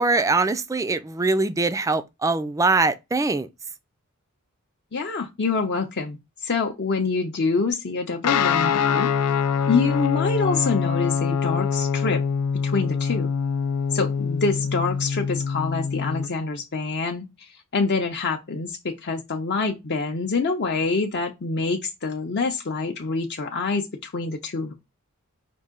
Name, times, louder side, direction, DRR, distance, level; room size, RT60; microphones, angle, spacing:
voice 1, 0.0-3.5, right 3 dB, 15° right, 0.3 m, -22 dB
voice 2, 4.9-9.1 9.7-12.2 12.6-13.3 13.9-24.7, left 4 dB, 50° left, 0.6 m, -26 dB
Guitar, 8.2-16.3, left 6 dB, 85° left, 0.4 m, -24 dB
5.3 x 2.7 x 3.7 m
head